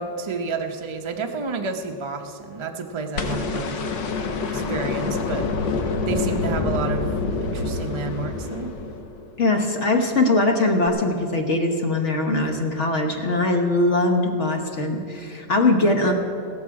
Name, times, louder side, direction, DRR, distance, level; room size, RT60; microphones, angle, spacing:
voice 1, 0.0-3.8 4.5-5.7 6.1-8.7, right 4 dB, 45° right, 4 dB, 0.3 m, -30 dB
sound 1, 3.2-9.3 10.9-11.0, left 4 dB, 80° left, 1.7 m, -26 dB
voice 2, 9.4-16.1, left 2 dB, 45° left, 4 dB, 1.2 m, -21 dB
16.0 x 13.5 x 4.8 m, 2.7 s
omnidirectional pair, 1.9 m